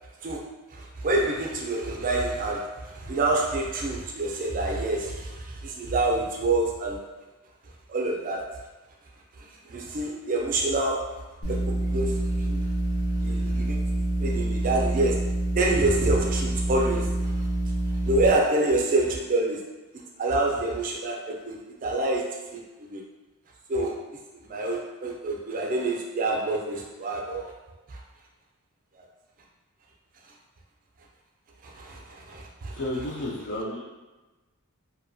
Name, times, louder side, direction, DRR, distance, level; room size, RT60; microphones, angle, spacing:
voice 1, 0.7-7.0 7.9-8.5 9.4-12.7 13.2-15.2 15.5-23.0 23.7-27.5 27.9-28.0 28.9-29.0 31.6-32.8 33.6-33.7, right 2 dB, 40° right, 0 dB, 0.4 m, -27 dB
sound 1, 11.4-18.3, right 1 dB, 80° left, 0.8 m, -27 dB
voice 2, 32.7-33.8, left 1 dB, 55° left, -3 dB, 0.4 m, -31 dB
2.7 x 2.1 x 2.5 m, 1.1 s
head